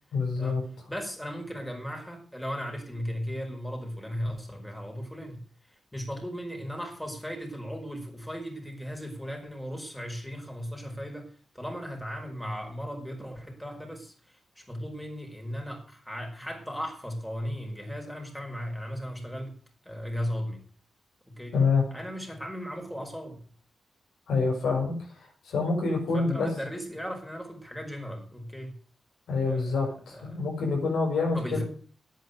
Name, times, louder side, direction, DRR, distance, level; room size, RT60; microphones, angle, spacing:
voice 1, 0.1-0.6 21.5-21.8 24.3-24.9 25.4-26.5 29.3-31.6, left 4 dB, 85° left, 1 dB, 6.3 m, -26 dB
voice 2, 0.9-19.5 19.8-20.6 21.3-21.6 21.9-23.4 26.1-28.8 29.4-30.4 31.3-31.6, equal, 5° left, 2 dB, 5.1 m, -37 dB
10.5 x 9.1 x 8.0 m, 0.43 s
cardioid pair, 70°, 0 cm